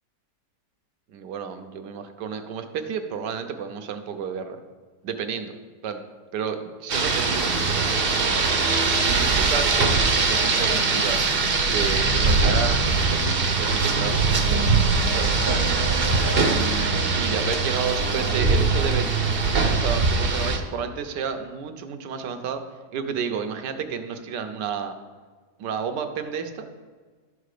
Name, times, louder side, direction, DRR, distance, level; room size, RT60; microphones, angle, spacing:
voice 1, 1.1-4.6 5.0-5.5 5.8-6.0 6.3-7.6 9.0-9.7 9.9-11.2 11.7-14.4 15.1-15.5 16.5-19.2 19.7-22.6 22.9-24.9 25.6-26.7, right 6 dB, 75° right, 7 dB, 1.4 m, -31 dB
Rain, 6.9-20.6, right 4 dB, 40° right, 0.9 m, -22 dB
12.0 x 5.0 x 6.6 m, 1.5 s
omnidirectional pair, 1.9 m